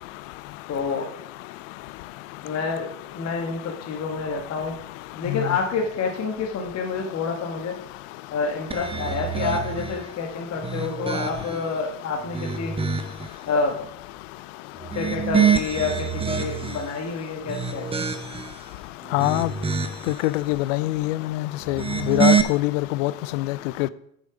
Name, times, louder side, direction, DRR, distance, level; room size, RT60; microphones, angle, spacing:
voice 1, 0.7-1.1 2.4-4.8 5.1-7.8 8.3-12.7 13.4-13.8 14.9-18.1, left 4 dB, 35° left, 1.6 m, -28 dB
sound 1, 8.7-10.0 10.5-11.7 12.2-13.3 14.8-16.9 17.4-18.6 19.0-20.2 21.6-22.4, right 6 dB, 15° right, 0.8 m, -25 dB
voice 2, 19.1-19.5 20.2-23.9, left 18 dB, 60° left, 0.6 m, -24 dB
9.1 x 6.2 x 4.9 m
hypercardioid pair, 80°, 44 cm